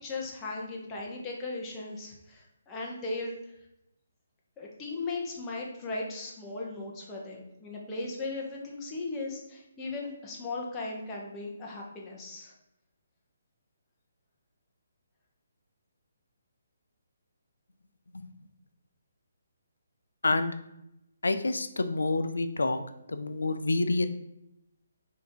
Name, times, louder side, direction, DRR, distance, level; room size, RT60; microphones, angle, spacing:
voice 1, 0.0-3.4 4.6-12.5, left 3 dB, 20° left, -3 dB, 0.9 m, -37 dB
voice 2, 21.2-22.8 23.1-24.1, left 2 dB, 85° left, 9 dB, 0.4 m, -28 dB
3.6 x 2.7 x 4.4 m, 0.83 s
figure-of-eight pair, 145°, 0 cm